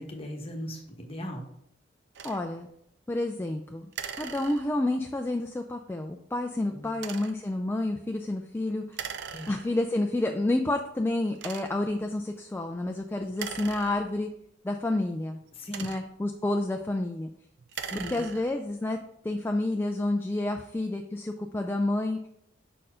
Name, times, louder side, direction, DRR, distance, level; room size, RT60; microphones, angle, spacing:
voice 1, 0.0-1.4 6.7-7.0 9.3-9.5 15.6-15.8 17.9-18.2, left 1 dB, 30° left, 1 dB, 1.2 m, -38 dB
sound 1, 2.1-2.4 3.9-5.0 6.9-7.5 8.9-9.9 10.6-10.7 11.3-12.0 13.3-14.4 15.4-16.3 17.6-18.7, right 7 dB, 65° right, 0.5 m, -40 dB
voice 2, 2.2-2.7 3.1-3.9 4.2-9.0 9.5-14.3 14.6-15.4 15.8-17.3 18.1-19.0 19.2-22.3, left 2 dB, 10° left, 3 dB, 0.3 m, -29 dB
5.5 x 4.4 x 4.9 m, 0.76 s
head